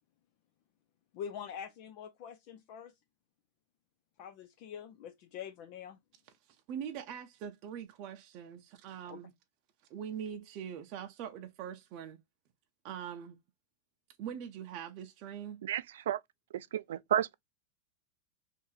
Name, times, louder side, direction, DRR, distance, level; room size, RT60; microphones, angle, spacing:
voice 1, 1.1-2.9 4.2-6.0 9.1-9.2, left 8 dB, 50° left, 0.4 m, -44 dB
voice 2, 6.5-9.3 9.9-12.2 12.8-13.4 14.2-15.6, right 8 dB, 45° right, 0.6 m, -42 dB
voice 3, 15.6-16.2 16.5-17.4, right 10 dB, 90° right, 0.3 m, -32 dB
2.8 x 2.6 x 3.9 m
supercardioid pair, 150°, 0 cm